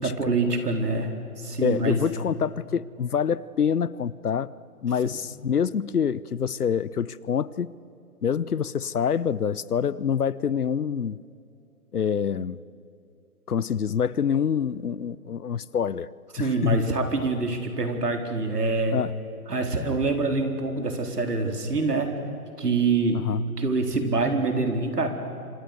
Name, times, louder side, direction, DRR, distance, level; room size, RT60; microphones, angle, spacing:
voice 1, 0.0-2.0 16.3-19.0 19.5-22.2 22.6-23.2 23.6-25.1, right 3 dB, 90° right, 4.3 m, -25 dB
voice 2, 1.6-4.5 4.8-7.7 8.2-11.2 11.9-12.6 13.5-16.1 16.4-16.8 18.9-19.1 23.1-23.4, left 7 dB, 75° left, 0.9 m, -26 dB
27.0 x 25.5 x 6.7 m
hypercardioid pair, 170°, 46 cm